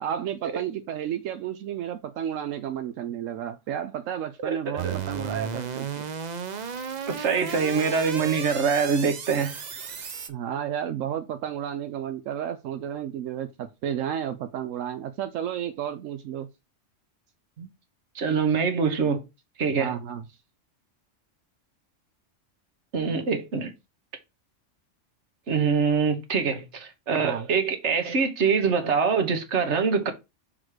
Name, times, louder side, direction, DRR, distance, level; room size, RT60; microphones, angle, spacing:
voice 1, 0.0-5.9 10.3-16.5 19.7-20.3 27.2-27.5, right 9 dB, 85° right, 1.0 m, -32 dB
sound 1, 4.8-10.3, right 7 dB, 45° right, 0.6 m, -34 dB
voice 2, 7.1-9.5 17.6-17.7 18.1-19.2 19.6-19.9 22.9-23.7 25.5-30.1, right 5 dB, 65° right, 1.4 m, -24 dB
6.2 x 3.9 x 4.8 m
omnidirectional pair, 1.3 m